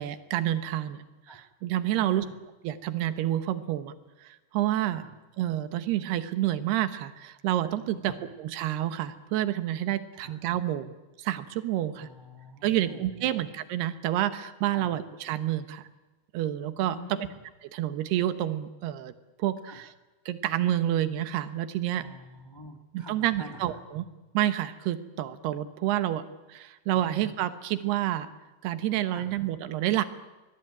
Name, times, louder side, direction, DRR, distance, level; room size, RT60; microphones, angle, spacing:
voice 1, 0.0-2.2 2.6-3.9 4.2-5.0 5.4-12.1 12.6-15.9 16.3-17.0 17.7-19.1 19.4-19.9 20.3-22.0 22.9-24.0 24.3-26.2 26.5-28.3 28.6-30.0, right 13 dB, 80° right, 12 dB, 3.2 m, -29 dB
voice 2, 1.9-2.3 4.9-5.1 7.9-8.2 10.2-10.4 11.9-13.4 14.7-14.9 16.9-17.4 19.7-19.9 21.9-23.8 26.9-27.3 29.1-29.3, left 1 dB, 35° left, 5 dB, 0.4 m, -46 dB
24.5 x 20.0 x 9.0 m, 1.1 s
omnidirectional pair, 4.7 m